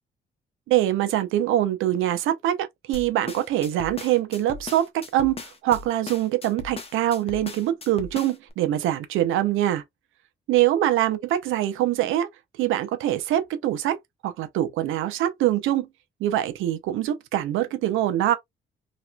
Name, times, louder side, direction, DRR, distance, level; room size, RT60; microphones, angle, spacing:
voice 1, 0.7-9.8 10.5-12.3 12.6-14.0 14.2-15.9 16.2-18.4, right 12 dB, 90° right, 0.7 m, -24 dB
sound 1, 2.9-8.5, left 4 dB, 30° left, 0.9 m, -38 dB
3.1 x 3.0 x 2.3 m
cardioid pair, 90°, 20 cm